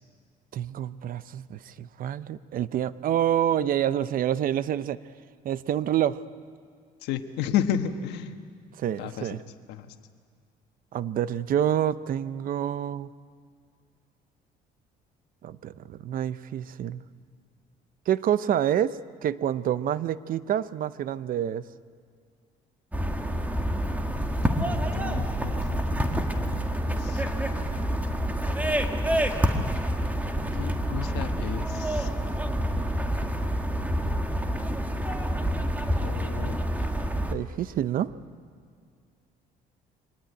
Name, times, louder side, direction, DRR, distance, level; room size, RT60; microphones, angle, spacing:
voice 1, 0.5-5.0 5.4-6.2 8.8-9.4 10.9-13.1 15.4-17.0 18.1-21.6 37.3-38.1, right 10 dB, 55° right, 15 dB, 0.7 m, -27 dB
voice 2, 7.0-8.3 9.0-9.4 9.7-9.9 24.7-27.2 30.5-32.1 36.0-36.6, left 9 dB, 90° left, 7 dB, 1.4 m, -33 dB
sound 1, 22.9-37.3, equal, 10° right, 1.7 m, -27 dB
24.0 x 19.0 x 9.4 m, 2.1 s
cardioid pair, 110°, 17 cm